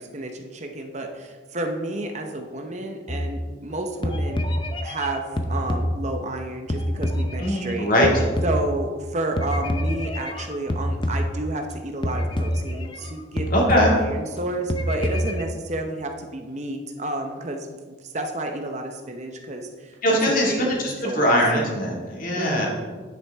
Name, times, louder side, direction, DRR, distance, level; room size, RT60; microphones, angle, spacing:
voice 1, 0.0-4.4 4.8-7.9 8.4-17.7 18.0-20.7 21.0-21.4 22.3-22.7, right 2 dB, 35° right, 4 dB, 0.8 m, -31 dB
sound 1, 3.1-3.7 4.0-6.4 6.7-9.0 9.4-11.7 12.0-13.1 13.4-14.4 14.7-15.4, equal, 25° left, 0.6 m, -27 dB
voice 2, 7.4-8.1 13.5-13.9 20.0-22.7, equal, 45° left, -2 dB, 2.2 m, -21 dB
10.0 x 8.8 x 3.5 m, 1.4 s
head